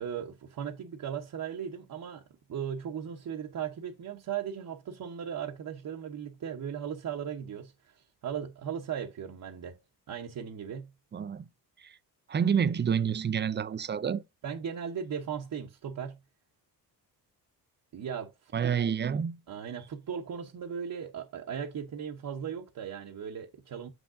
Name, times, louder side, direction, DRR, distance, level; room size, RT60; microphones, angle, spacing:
voice 1, 0.0-2.2 2.5-9.8 10.1-10.9 14.4-16.2 17.9-18.8 19.5-23.9, right 8 dB, 50° right, 1.0 m, -37 dB
voice 2, 11.1-11.4 11.8-11.9 12.3-14.2 18.5-19.4, right 7 dB, 30° right, 0.4 m, -28 dB
7.0 x 6.3 x 2.5 m
cardioid pair, 100°, 40 cm